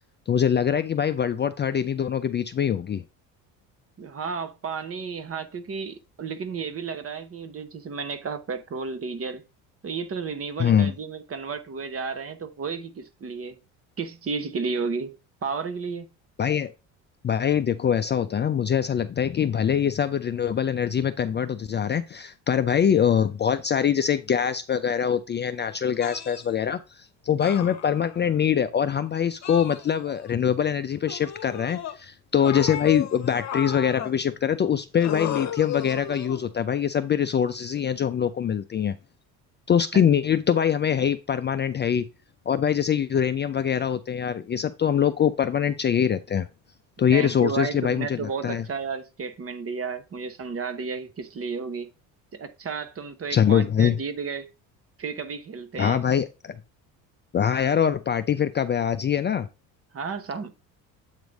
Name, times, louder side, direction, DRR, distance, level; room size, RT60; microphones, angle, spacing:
voice 1, 0.3-3.0 10.6-10.9 16.4-16.7 17.2-38.9 39.7-42.1 42.5-46.5 47.0-48.6 53.3-54.0 55.8-56.6 57.3-59.5, left 8 dB, 25° left, 0.4 m, -23 dB
voice 2, 4.0-9.4 9.8-13.5 14.0-15.1 15.4-16.1 47.1-51.9 52.3-54.5 55.0-56.0 59.9-60.5, right 5 dB, 35° right, 1.0 m, -32 dB
sound 1, 26.0-26.4 27.4-28.3 29.4-30.3 31.1-32.0 32.4-34.2 35.0-36.5 37.6-37.8, left 9 dB, 40° left, 1.1 m, -34 dB
8.2 x 3.1 x 5.1 m
supercardioid pair, 85°, 40 cm